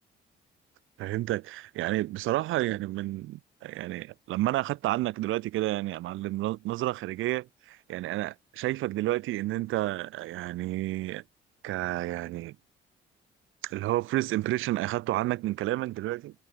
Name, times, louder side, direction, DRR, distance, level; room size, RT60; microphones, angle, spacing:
voice 1, 1.0-11.2 11.6-12.5 13.6-16.3, right 16 dB, 90° right, 1.2 m, -30 dB
cardioid pair, 90°, 20 cm